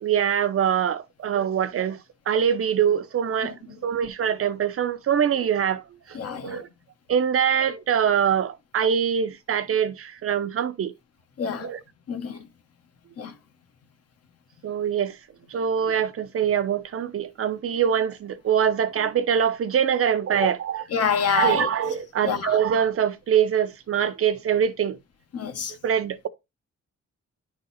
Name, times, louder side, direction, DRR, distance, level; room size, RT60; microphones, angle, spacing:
voice 1, 0.0-2.0 2.3-3.5 3.8-5.8 6.4-6.7 7.1-10.9 11.6-11.8 14.6-15.1 15.5-20.8 21.3-25.0 25.8-26.3, right 8 dB, 50° right, 0.7 m, -23 dB
voice 2, 6.1-6.6 11.4-11.7 12.1-12.4 13.2-13.3 20.9-21.7 22.2-22.6 25.3-25.7, left 7 dB, 55° left, 1.2 m, -26 dB
10.5 x 3.9 x 4.1 m
wide cardioid pair, 170°, 30 cm